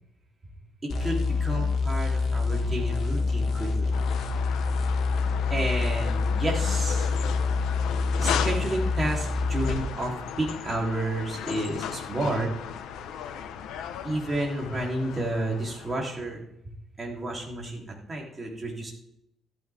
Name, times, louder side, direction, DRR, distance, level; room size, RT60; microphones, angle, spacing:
sound 1, 0.9-9.8, left 4 dB, 55° left, 1.8 m, -26 dB
voice 1, 1.0-4.0 5.5-7.1 8.2-12.5 14.0-16.4 17.0-17.8 18.1-18.9, right 1 dB, 20° right, -2 dB, 3.3 m, -31 dB
sound 2, 3.9-15.9, left 8 dB, 80° left, 1.0 m, -36 dB
14.5 x 12.5 x 3.6 m, 0.81 s
cardioid pair, 125°, 0 cm